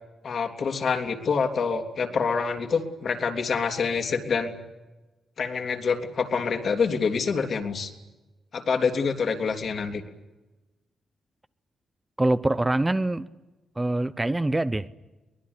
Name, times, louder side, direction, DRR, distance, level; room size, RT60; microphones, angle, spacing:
voice 1, 0.2-4.5 5.4-7.9 8.5-10.0, left 5 dB, 55° left, 3.3 m, -26 dB
voice 2, 12.2-13.3 13.8-14.9, right 2 dB, 15° right, 0.8 m, -24 dB
23.0 x 20.5 x 9.8 m
cardioid pair, 100°, 0 cm